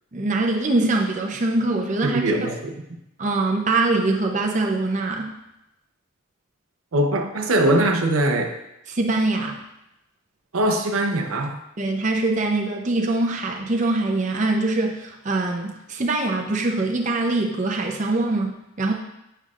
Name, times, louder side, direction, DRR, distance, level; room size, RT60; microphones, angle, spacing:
voice 1, 0.1-2.2 3.2-5.4 8.9-9.6 11.8-18.9, right 2 dB, 35° right, 1 dB, 0.6 m, -23 dB
voice 2, 2.0-2.8 6.9-8.5 10.5-11.6, right 1 dB, 85° right, 4 dB, 0.7 m, -21 dB
8.4 x 5.5 x 2.4 m, 0.86 s
head